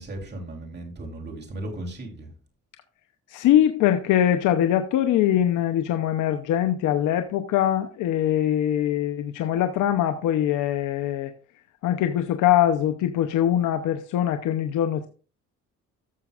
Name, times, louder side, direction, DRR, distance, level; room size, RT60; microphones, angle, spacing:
voice 1, 0.0-2.3, right 1 dB, 35° right, 0 dB, 3.2 m, -36 dB
voice 2, 3.3-11.3 11.8-15.1, left 11 dB, 90° left, 7 dB, 0.8 m, -22 dB
13.0 x 7.0 x 2.4 m, 0.37 s
cardioid pair, 90°, 30 cm